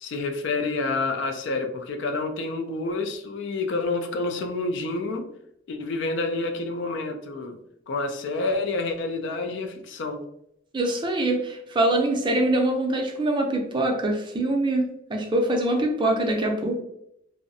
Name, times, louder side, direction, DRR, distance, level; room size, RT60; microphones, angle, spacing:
voice 1, 0.0-5.3 5.7-7.6 7.9-10.2, left 3 dB, 65° left, 5 dB, 0.4 m, -28 dB
voice 2, 10.7-16.8, right 1 dB, 25° right, 2 dB, 0.4 m, -24 dB
2.5 x 2.0 x 2.5 m, 0.76 s
head